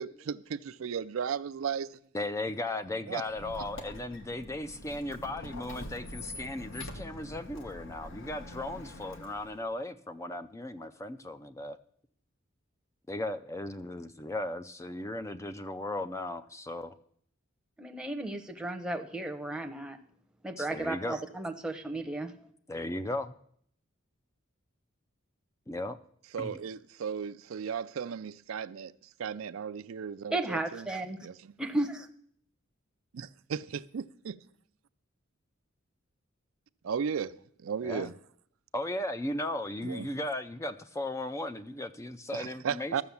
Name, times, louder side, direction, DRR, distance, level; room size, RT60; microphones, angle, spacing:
voice 1, 0.0-2.0 3.1-3.2 3.5-3.7 26.3-30.9 31.2-31.5 33.1-34.4 36.8-38.1 39.8-40.1 42.3-43.0, right 7 dB, 80° right, 0.4 m, -36 dB
voice 2, 2.1-11.8 13.1-16.9 20.6-21.2 22.7-23.3 25.7-26.0 26.4-26.6 37.8-38.1 38.7-43.0, left 1 dB, 15° left, 0.4 m, -36 dB
Squeak, 3.3-9.7, left 1 dB, 65° left, 1.2 m, -45 dB
voice 3, 17.8-20.0 20.4-22.3 30.3-31.2 31.6-32.1, right 2 dB, 5° right, 0.8 m, -34 dB
13.0 x 6.8 x 7.0 m
head